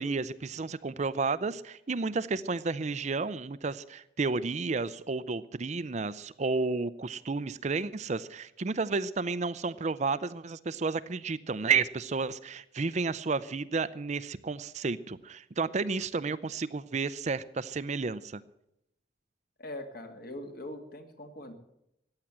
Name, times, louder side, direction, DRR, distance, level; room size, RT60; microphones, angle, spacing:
voice 1, 0.0-18.4, right 4 dB, 40° right, 15 dB, 0.5 m, -31 dB
voice 2, 19.6-21.5, left 1 dB, 55° left, 6 dB, 2.1 m, -42 dB
15.0 x 9.8 x 9.0 m, 0.80 s
head